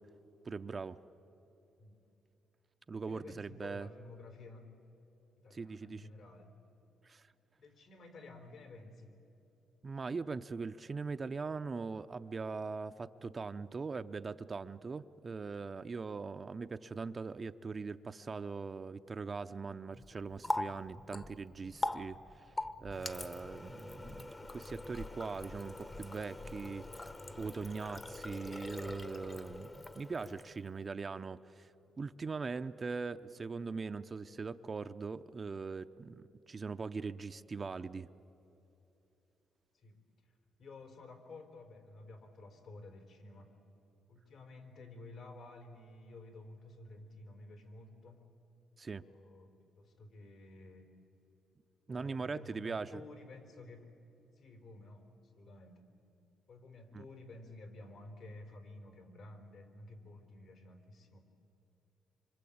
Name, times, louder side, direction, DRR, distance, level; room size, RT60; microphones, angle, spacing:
voice 1, 0.4-1.0 2.9-3.9 5.5-6.1 7.0-7.3 9.8-22.5 22.8-27.0 27.4-38.1 48.8-49.0 51.9-53.0 56.9-57.0, right 4 dB, 35° right, 10 dB, 0.7 m, -41 dB
voice 2, 3.1-4.8 5.4-6.6 7.6-9.2 39.7-43.6 44.1-48.3 48.8-49.5 49.8-50.9 51.9-53.9 54.3-55.8 56.5-61.3, left 2 dB, 65° left, 5 dB, 4.2 m, -53 dB
Water tap faucet, 19.9-30.7, left 2 dB, 25° left, 1.2 m, -43 dB
26.0 x 26.0 x 8.7 m, 2.9 s
cardioid pair, 90°, 0 cm